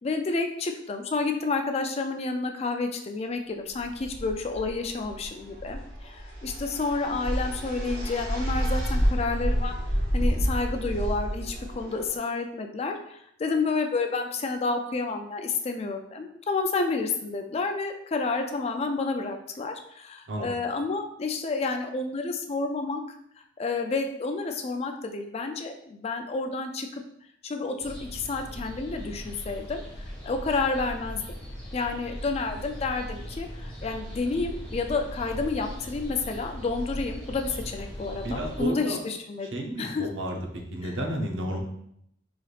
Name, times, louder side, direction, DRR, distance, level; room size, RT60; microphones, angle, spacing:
voice 1, 0.0-9.7 10.1-23.0 23.6-26.9 27.4-29.8 30.2-31.3 31.7-40.1 40.8-40.9, left 3 dB, 35° left, 5 dB, 0.3 m, -30 dB
sound 1, 3.8-12.1, equal, 55° right, 0.9 m, -29 dB
sound 2, 27.8-38.7, equal, 5° left, 1.4 m, -39 dB
voice 2, 38.2-39.0 39.5-40.4 40.7-41.6, right 1 dB, 85° right, 2 dB, 0.7 m, -31 dB
3.9 x 3.2 x 2.4 m, 0.74 s
head